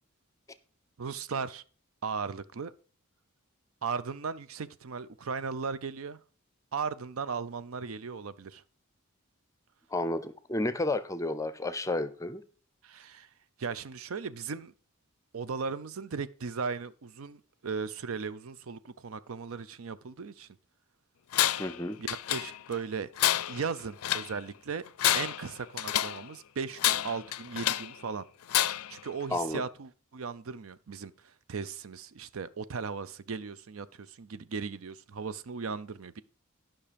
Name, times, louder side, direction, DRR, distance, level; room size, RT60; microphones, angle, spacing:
voice 1, 1.0-1.6 2.0-2.7 3.8-6.2 6.7-8.6 12.8-13.3 13.6-14.7 15.3-20.5 22.0-23.1 23.5-24.8 25.1-28.2 28.9-36.2, right 5 dB, 70° right, 0.5 m, -37 dB
voice 2, 9.9-12.4 21.6-22.0 29.3-29.6, left 2 dB, 15° left, 0.5 m, -31 dB
Tools, 21.3-21.8 22.1-22.8 23.2-24.3 24.9-26.2 26.8-27.9 28.5-29.0, left 13 dB, 85° left, 0.4 m, -29 dB
11.0 x 5.7 x 5.1 m
head